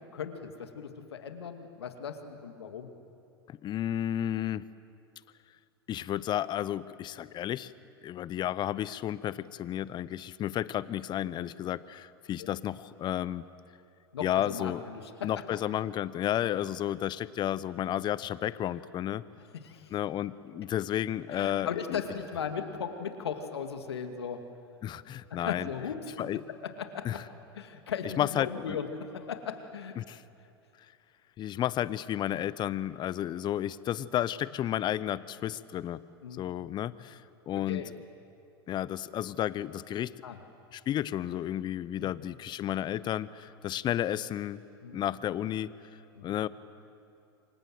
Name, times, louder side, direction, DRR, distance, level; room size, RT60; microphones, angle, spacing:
voice 1, 0.1-2.9 12.4-12.5 14.1-15.3 19.5-19.9 21.3-24.4 25.4-26.1 26.8-27.1 27.5-29.9 36.2-36.4 37.7-37.9 40.2-40.4 42.0-42.1 44.8-45.0 46.1-46.3, left 7 dB, 80° left, 6 dB, 2.4 m, -37 dB
voice 2, 3.5-4.6 5.9-7.7 8.0-13.5 14.2-14.8 15.2-19.2 19.9-22.0 24.8-25.7 26.2-26.4 27.0-27.2 28.0-28.8 30.0-30.2 31.4-36.0 36.4-37.9 38.7-40.1 40.7-44.6 44.9-45.7 46.2-46.5, left 11 dB, 35° left, 18 dB, 0.9 m, -32 dB
28.5 x 24.5 x 7.9 m, 2.6 s
hypercardioid pair, 100°, 13 cm